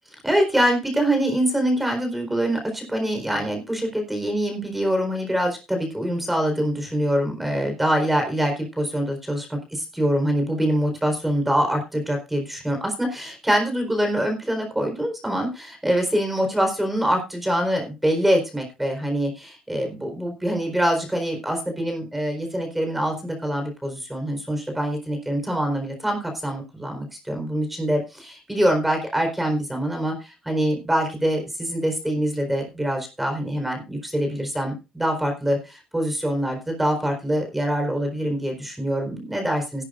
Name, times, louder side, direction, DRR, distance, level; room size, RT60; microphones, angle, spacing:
voice 1, 0.2-39.8, equal, 5° right, 4 dB, 4.3 m, -24 dB
16.0 x 11.5 x 2.5 m, 0.27 s
cardioid pair, 130°, 2 cm